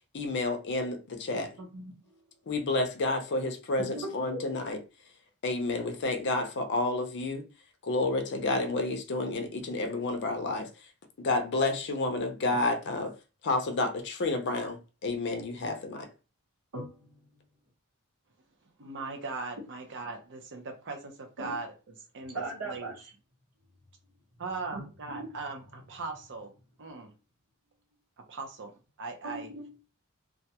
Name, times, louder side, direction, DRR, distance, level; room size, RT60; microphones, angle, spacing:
voice 1, 0.1-1.5 2.5-4.8 5.4-7.4 7.8-10.7 11.2-13.1 13.4-16.1, left 2 dB, 55° left, 0.5 m, -30 dB
voice 2, 1.6-1.9 3.8-4.4 16.7-17.3 21.4-21.6 22.3-23.1 24.7-24.8 25.1-25.3 29.2-29.9, right 2 dB, 75° right, 1.0 m, -39 dB
voice 3, 18.8-21.7 22.1-22.9 24.4-26.5 26.8-27.1 28.3-28.7 29.0-29.5, right 3 dB, 55° right, 0.6 m, -39 dB
2.3 x 2.2 x 2.8 m
head